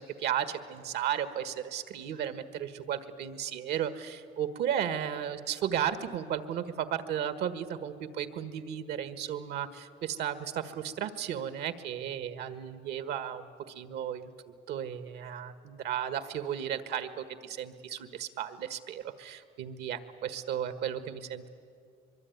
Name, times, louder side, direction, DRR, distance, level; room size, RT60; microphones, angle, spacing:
voice 1, 0.0-21.5, right 9 dB, 75° right, 11 dB, 1.6 m, -34 dB
23.5 x 23.0 x 9.5 m, 2.3 s
cardioid pair, 110°, 17 cm